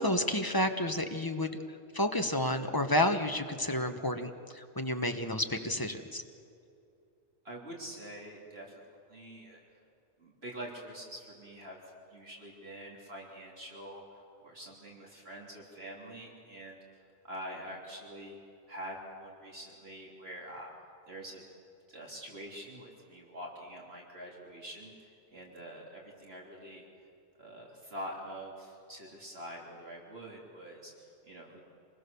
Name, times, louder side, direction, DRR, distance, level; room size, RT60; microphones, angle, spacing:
voice 1, 0.0-1.5 1.9-6.2, left 1 dB, 20° left, 6 dB, 1.2 m, -30 dB
voice 2, 7.4-8.8 9.1-9.6 10.2-11.8 12.1-16.8 17.2-18.4 18.7-20.7 21.1-21.4 21.9-26.8 27.4-31.6, equal, 60° right, -2 dB, 3.6 m, -45 dB
27.0 x 20.5 x 7.0 m, 2.6 s
omnidirectional pair, 1.2 m